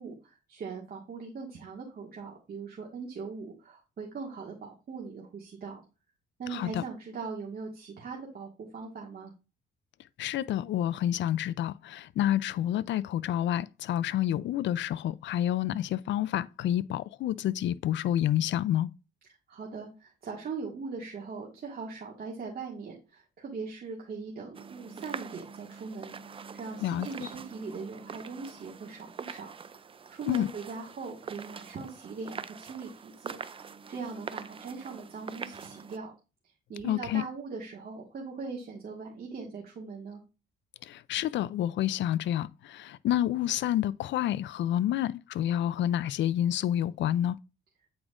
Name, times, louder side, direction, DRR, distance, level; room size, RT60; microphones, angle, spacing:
voice 1, 0.0-5.8 6.4-9.3 19.5-29.5 30.1-36.1 36.7-40.2, right 4 dB, 50° right, 1.8 m, -40 dB
voice 2, 6.5-6.8 10.2-18.9 26.8-27.1 30.3-30.5 36.8-37.2 40.8-47.4, left 12 dB, 65° left, 0.4 m, -29 dB
sound 1, 24.5-36.0, right 6 dB, 25° right, 0.4 m, -44 dB
8.2 x 4.9 x 2.5 m
cardioid pair, 90°, 20 cm